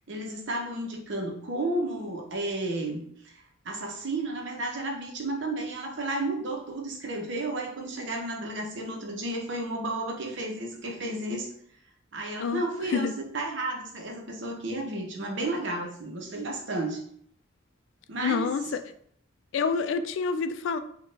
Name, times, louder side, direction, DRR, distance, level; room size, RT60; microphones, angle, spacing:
voice 1, 0.1-11.5 12.1-17.1 18.1-18.5, right 2 dB, 65° right, 1 dB, 0.8 m, -32 dB
voice 2, 12.4-13.1 18.2-18.8 19.5-20.8, left 5 dB, 70° left, 11 dB, 0.3 m, -28 dB
4.2 x 2.3 x 3.3 m, 0.65 s
head